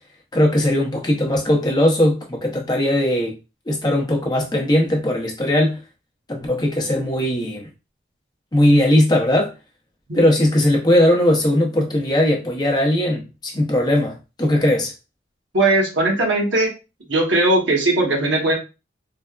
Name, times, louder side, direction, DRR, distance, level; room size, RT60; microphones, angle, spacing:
voice 1, 0.3-3.4 3.7-5.8 6.3-7.7 8.5-9.5 10.1-14.9, left 1 dB, 20° left, 0.6 m, -19 dB
voice 2, 15.5-16.7 17.1-18.6, right 2 dB, 75° right, 1.0 m, -18 dB
3.2 x 2.0 x 2.3 m
head